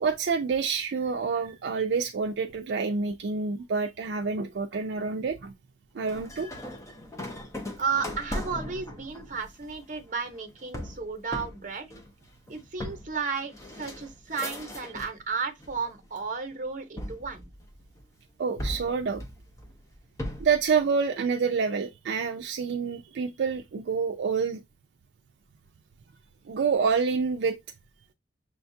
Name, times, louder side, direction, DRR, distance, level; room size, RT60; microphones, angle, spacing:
voice 1, 0.0-5.5 5.9-6.5 18.4-19.2 20.4-24.6 26.5-27.6, right 5 dB, 70° right, 0.4 m, -27 dB
sound 1, 6.1-15.2 15.6-16.2 17.0-18.0 18.6-20.6, left 1 dB, 15° left, 0.6 m, -38 dB
voice 2, 7.8-11.9 12.5-17.5, right 5 dB, 45° right, 0.8 m, -33 dB
6.3 x 2.3 x 2.6 m
head